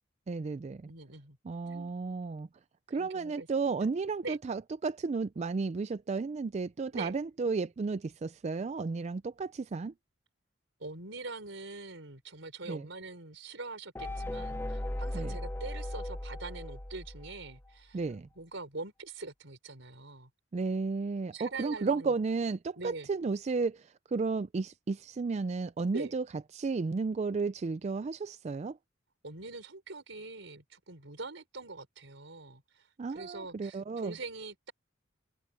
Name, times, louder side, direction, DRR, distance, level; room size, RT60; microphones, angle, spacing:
voice 1, 0.3-0.9 1.4-2.5 2.9-9.9 12.7-12.9 15.1-15.4 17.9-18.3 20.5-26.2 26.5-28.8 33.0-34.1, right 4 dB, 35° right, 0.3 m, -33 dB
voice 2, 0.9-1.4 1.6-2.0 2.9-3.5 4.2-4.4 6.9-7.1 10.8-18.0 18.4-20.3 21.3-22.1 22.8-23.1 25.9-26.1 29.2-34.7, right 3 dB, 75° right, 4.3 m, -43 dB
sound 1, 14.0-17.7, left 1 dB, 10° left, 0.7 m, -37 dB
open air
head